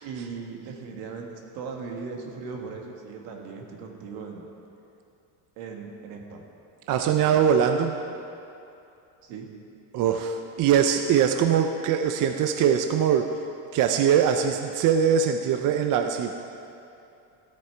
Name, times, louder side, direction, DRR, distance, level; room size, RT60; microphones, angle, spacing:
voice 1, 0.0-4.5 5.6-6.4 7.0-7.5 9.2-9.5, right 5 dB, 80° right, 1 dB, 1.8 m, -38 dB
voice 2, 6.9-8.0 9.9-13.3 13.7-16.3, right 8 dB, 50° right, 6 dB, 0.6 m, -22 dB
13.5 x 8.7 x 4.5 m, 2.7 s
cardioid pair, 125°, 43 cm